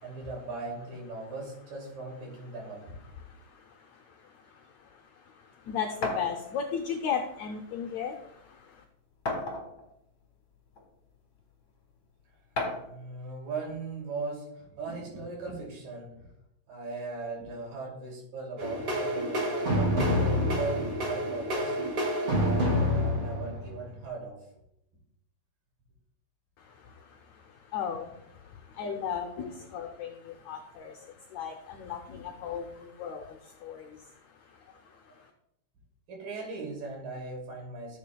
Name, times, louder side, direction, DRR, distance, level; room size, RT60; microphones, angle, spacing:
voice 1, 0.0-2.8 12.8-16.3 16.7-21.8 22.3-24.4 36.1-38.0, right 3 dB, 85° right, -2 dB, 4.4 m, -38 dB
voice 2, 5.7-8.1 27.7-28.1 28.8-30.9 31.3-33.2 33.6-33.9, left 7 dB, 75° left, 4 dB, 1.7 m, -34 dB
sound 1, 6.0-6.3 7.4-7.5 8.0-8.1 9.3-9.9 10.7-10.8 12.6-12.9, left 2 dB, 45° left, 2.1 m, -32 dB
sound 2, 18.6-24.0, equal, 30° right, 1.7 m, -28 dB
15.0 x 7.4 x 2.3 m, 0.81 s
omnidirectional pair, 3.8 m